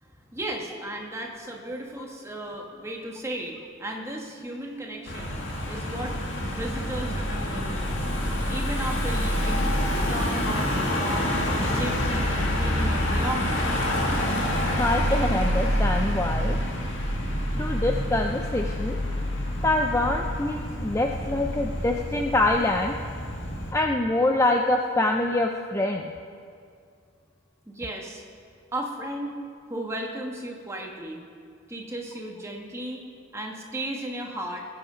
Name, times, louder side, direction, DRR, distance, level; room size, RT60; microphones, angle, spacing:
voice 1, 0.0-5.4 5.7-8.1 8.5-13.7 27.7-28.2 28.7-29.4 29.7-31.2 31.7-33.0 33.3-34.6, right 1 dB, 15° right, 0 dB, 1.3 m, -35 dB
Car passing by / Engine, 5.1-23.7, equal, 60° left, 1.9 m, -27 dB
voice 2, 14.6-16.6 17.6-19.0 19.6-22.9 23.7-26.1, left 2 dB, 15° left, 2 dB, 0.4 m, -25 dB
19.5 x 7.8 x 5.1 m, 2.3 s
head